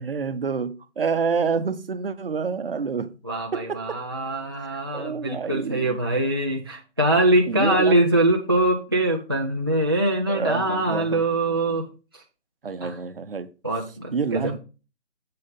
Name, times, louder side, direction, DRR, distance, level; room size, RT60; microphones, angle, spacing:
voice 1, 0.0-3.1 3.5-4.0 4.6-6.0 7.5-8.1 10.3-11.2 12.6-13.5 14.1-14.6, right 5 dB, 55° right, 0.8 m, -28 dB
voice 2, 3.2-11.9 12.1-12.2 12.8-12.9 13.6-14.5, right 1 dB, 20° right, 0.4 m, -23 dB
7.6 x 3.7 x 5.4 m
figure-of-eight pair, 150°, 34 cm